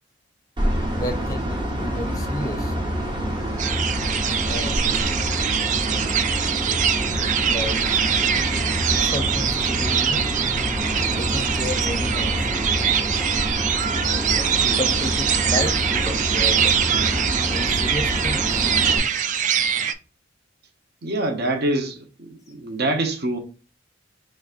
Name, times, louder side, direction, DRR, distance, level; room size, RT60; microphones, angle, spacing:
sound 1, 0.6-19.0, equal, 25° right, 1.0 m, -26 dB
voice 1, 0.8-2.8 4.5-5.1 7.5-8.2 8.5-10.3 11.2-12.5 14.3-16.8 17.5-18.6, left 1 dB, 15° left, 0.6 m, -32 dB
sound 2, 3.6-19.9, right 8 dB, 40° right, 0.3 m, -23 dB
voice 2, 21.0-23.4, right 2 dB, 55° right, 0.8 m, -25 dB
5.0 x 3.3 x 2.5 m
head